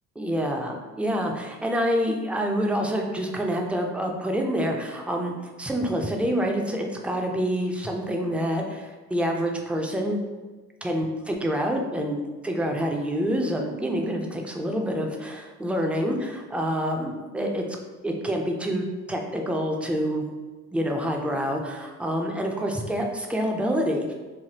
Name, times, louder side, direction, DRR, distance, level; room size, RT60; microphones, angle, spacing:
voice 1, 0.2-10.2 10.8-12.2 12.4-17.7 18.0-20.3 20.7-24.1, equal, 5° right, 2 dB, 0.3 m, -27 dB
3.2 x 2.0 x 2.8 m, 1.3 s
cardioid pair, 90°, 30 cm